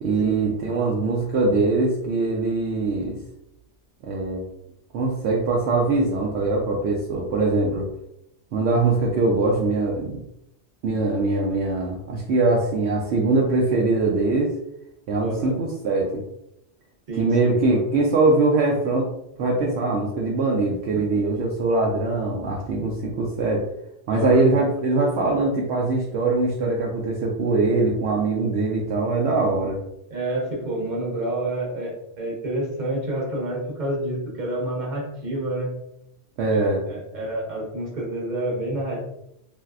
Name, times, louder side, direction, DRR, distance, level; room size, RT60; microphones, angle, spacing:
voice 1, 0.0-3.2 4.0-4.4 4.9-7.9 8.5-10.2 10.8-14.5 15.1-16.2 17.2-19.1 19.4-23.6 24.1-29.8 36.4-36.8, right 3 dB, 70° right, -2 dB, 0.8 m, -22 dB
voice 2, 15.2-15.5 17.1-17.8 24.1-24.4 30.1-35.7 36.5-39.0, right 1 dB, 45° right, -3 dB, 1.0 m, -28 dB
3.2 x 2.7 x 2.3 m, 0.81 s
omnidirectional pair, 1.2 m